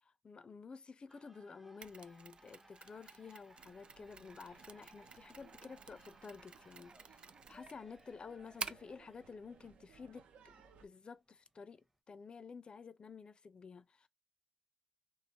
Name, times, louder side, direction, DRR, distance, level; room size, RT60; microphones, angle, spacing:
voice 1, 0.0-10.5 10.8-14.1, left 5 dB, 45° left, 0.4 m, -52 dB
sound 1, 1.1-12.0, right 1 dB, 10° right, 0.6 m, -66 dB
Mechanisms, 1.8-9.0, right 5 dB, 50° right, 0.3 m, -51 dB
sound 2, 3.6-10.9, right 6 dB, 90° right, 0.6 m, -64 dB
3.0 x 2.3 x 2.7 m
cardioid pair, 60°, 2 cm